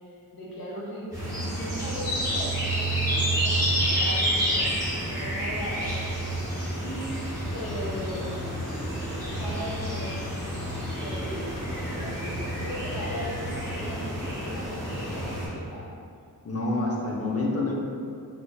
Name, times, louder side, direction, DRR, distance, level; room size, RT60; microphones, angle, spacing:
voice 1, 0.0-6.0 6.8-7.2 7.5-8.8 9.4-10.3 11.0-15.8, equal, 70° left, -6 dB, 0.8 m, -38 dB
sound 1, 1.1-15.5, right 1 dB, 10° right, 1.4 m, -29 dB
voice 2, 16.4-17.8, left 2 dB, 40° left, -2 dB, 0.5 m, -27 dB
3.4 x 3.4 x 2.2 m, 2.4 s
wide cardioid pair, 110°, 37 cm